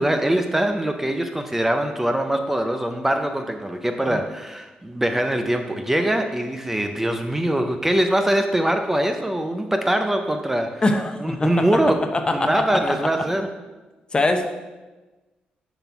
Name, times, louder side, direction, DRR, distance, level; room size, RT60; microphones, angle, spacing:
voice 1, 0.0-10.8 11.2-12.0 12.3-13.5, right 1 dB, 10° right, 6 dB, 0.6 m, -23 dB
voice 2, 10.8-11.6 12.1-12.8 14.1-14.5, left 2 dB, 30° left, 6 dB, 0.8 m, -22 dB
6.9 x 4.2 x 5.9 m, 1.2 s
cardioid pair, 90°, 3 cm